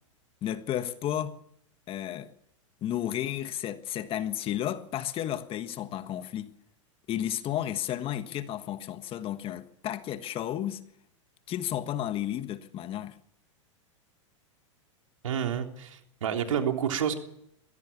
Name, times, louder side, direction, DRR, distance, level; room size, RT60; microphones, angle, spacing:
voice 1, 0.4-1.4 1.9-2.3 2.8-6.5 7.1-10.8 11.5-13.2, left 11 dB, 35° left, 1.5 m, -32 dB
voice 2, 15.2-17.2, right 8 dB, 85° right, 3.4 m, -29 dB
22.5 x 16.5 x 7.2 m
hypercardioid pair, 115°, 16 cm